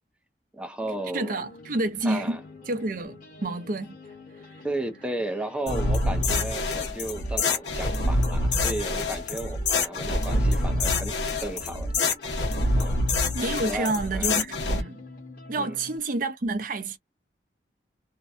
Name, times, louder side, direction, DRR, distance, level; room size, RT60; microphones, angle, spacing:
voice 1, 0.5-1.3 2.0-2.4 4.6-11.9 12.8-13.0 13.7-14.3 15.6-15.8, right 2 dB, 5° right, 0.6 m, -34 dB
sound 1, 0.8-16.0, left 2 dB, 50° left, 1.1 m, -48 dB
voice 2, 1.1-2.4 2.7-4.0 13.3-15.0 15.5-17.0, right 2 dB, 50° right, 0.6 m, -29 dB
sound 2, 5.7-14.8, left 2 dB, 75° left, 0.9 m, -26 dB
2.6 x 2.2 x 2.4 m
head